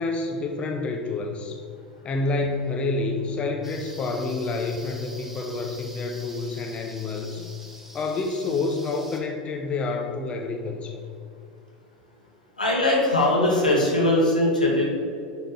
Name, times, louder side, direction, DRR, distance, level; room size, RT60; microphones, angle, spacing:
voice 1, 0.0-1.6 2.0-7.4 7.9-11.0, left 3 dB, 25° left, 3 dB, 0.8 m, -28 dB
sound 1, 3.6-9.2, right 1 dB, 5° right, 1.3 m, -45 dB
voice 2, 12.6-14.8, left 1 dB, 85° left, -4 dB, 2.0 m, -20 dB
10.0 x 4.1 x 5.2 m, 2.4 s
figure-of-eight pair, 80°, 4 cm